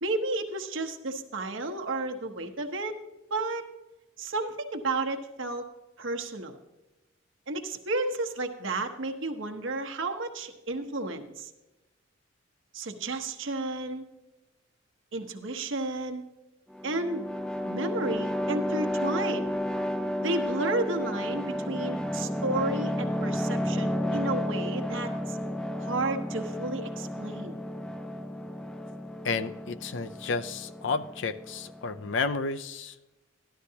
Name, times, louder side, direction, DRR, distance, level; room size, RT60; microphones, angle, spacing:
voice 1, 0.0-3.0 3.3-3.7 4.2-5.6 6.0-6.6 7.5-11.5 12.7-14.0 15.1-16.2 16.8-17.3 17.6-19.5 20.2-25.4 25.8-27.6, right 2 dB, 70° right, 5 dB, 1.0 m, -32 dB
sound 1, 16.7-32.1, equal, 5° left, 0.3 m, -32 dB
voice 2, 29.2-33.0, left 4 dB, 60° left, 11 dB, 0.5 m, -31 dB
13.0 x 11.5 x 2.8 m, 1.0 s
head